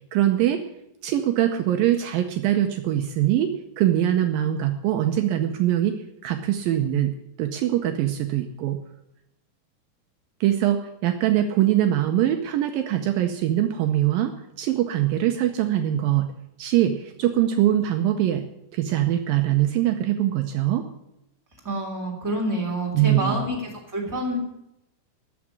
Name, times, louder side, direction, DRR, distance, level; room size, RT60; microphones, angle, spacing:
voice 1, 0.1-0.6 1.0-6.0 6.2-8.8 10.4-16.3 16.6-18.5 18.7-20.9 22.9-23.4, right 12 dB, 80° right, 6 dB, 2.4 m, -23 dB
voice 2, 21.6-24.4, right 1 dB, 5° right, -1 dB, 2.5 m, -28 dB
13.5 x 6.1 x 9.8 m, 0.85 s
omnidirectional pair, 4.5 m